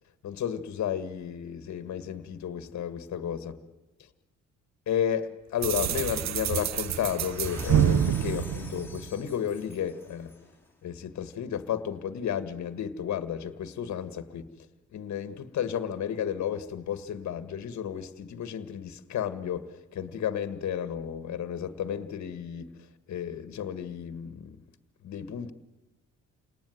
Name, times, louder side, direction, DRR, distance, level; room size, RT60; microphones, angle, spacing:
voice 1, 0.2-3.5 4.9-10.3 10.8-14.5 14.9-22.7 23.1-24.6 25.0-25.5, left 9 dB, 65° left, 1.8 m, -33 dB
sound 1, 5.6-9.5, right 10 dB, 65° right, 0.8 m, -27 dB
sound 2, 7.2-10.5, left 2 dB, 10° left, 4.2 m, -42 dB
29.0 x 19.0 x 9.4 m
cardioid pair, 90°, 30 cm